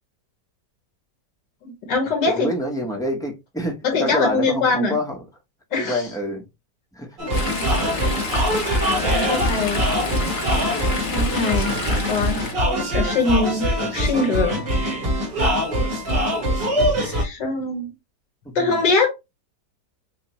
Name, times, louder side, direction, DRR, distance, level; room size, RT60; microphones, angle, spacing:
voice 1, 1.6-2.5 3.8-5.0 5.7-6.0 7.6-7.7 8.8-9.8 11.1-12.4 12.7-14.6 17.0-17.9 18.6-19.1, left 3 dB, 80° left, 2.0 m, -23 dB
voice 2, 2.3-5.2 5.7-6.4 6.9-7.2 18.5-18.8, left 1 dB, 5° left, 0.4 m, -27 dB
sound 1, 7.2-17.2, equal, 85° right, 2.3 m, -23 dB
Chatter / Stream, 7.3-12.5, left 3 dB, 35° left, 1.0 m, -28 dB
6.3 x 2.1 x 3.0 m
omnidirectional pair, 1.9 m